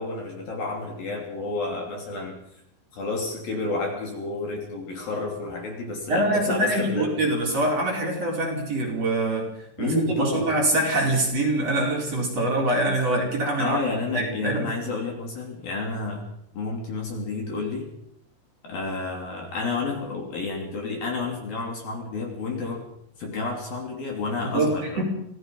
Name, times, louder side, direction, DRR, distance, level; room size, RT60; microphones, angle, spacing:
voice 1, 0.0-2.4 2.9-7.1 9.8-10.5 13.6-16.3 16.5-17.9 18.6-22.8 23.2-25.0, left 3 dB, 50° left, 1 dB, 4.5 m, -30 dB
voice 2, 6.1-9.5 9.8-13.8 14.1-14.7 24.4-25.0, right 1 dB, 30° right, -2 dB, 5.3 m, -24 dB
26.5 x 18.5 x 5.5 m, 0.74 s
omnidirectional pair, 5.7 m